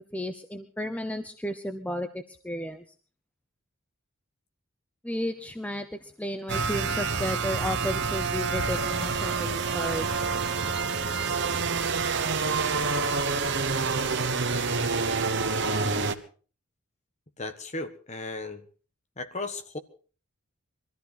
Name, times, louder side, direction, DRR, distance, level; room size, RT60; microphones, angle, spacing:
voice 1, 0.1-2.8 5.0-10.4, equal, 5° left, 7 dB, 0.8 m, -33 dB
sound 1, 6.5-16.1, right 4 dB, 50° right, 1.3 m, -27 dB
voice 2, 17.4-18.6 19.2-19.8, left 2 dB, 30° left, 8 dB, 1.4 m, -35 dB
22.5 x 14.0 x 4.0 m, 0.39 s
head